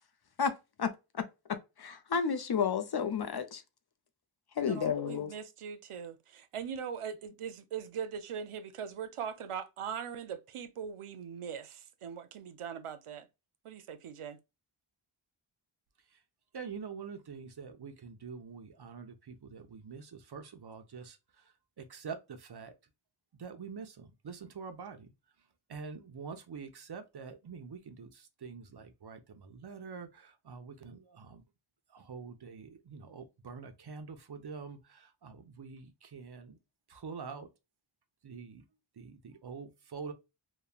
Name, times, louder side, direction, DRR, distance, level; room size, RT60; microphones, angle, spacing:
voice 1, 0.4-3.6 4.6-5.3, left 6 dB, 50° left, 0.5 m, -32 dB
voice 2, 4.6-13.3 13.6-14.4, right 7 dB, 85° right, 0.6 m, -41 dB
voice 3, 16.5-21.4 21.8-22.7 23.3-25.1 25.7-31.4 31.9-36.6 36.9-37.5 38.2-38.6 39.0-40.1, right 5 dB, 50° right, 0.7 m, -45 dB
3.1 x 2.2 x 2.3 m
wide cardioid pair, 85°, 50 cm